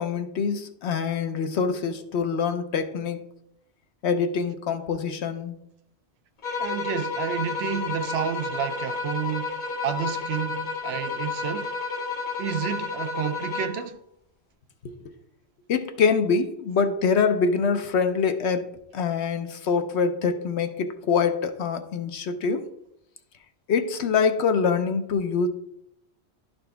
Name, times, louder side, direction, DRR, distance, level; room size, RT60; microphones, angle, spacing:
voice 1, 0.0-3.2 4.0-5.6 14.8-15.1 15.7-22.7 23.7-25.5, left 5 dB, 80° left, 1.0 m, -25 dB
sound 1, 6.4-13.9, left 4 dB, 50° left, 1.0 m, -31 dB
voice 2, 6.6-11.7 12.4-14.0, right 8 dB, 75° right, 0.8 m, -30 dB
11.5 x 4.3 x 3.4 m
omnidirectional pair, 1.1 m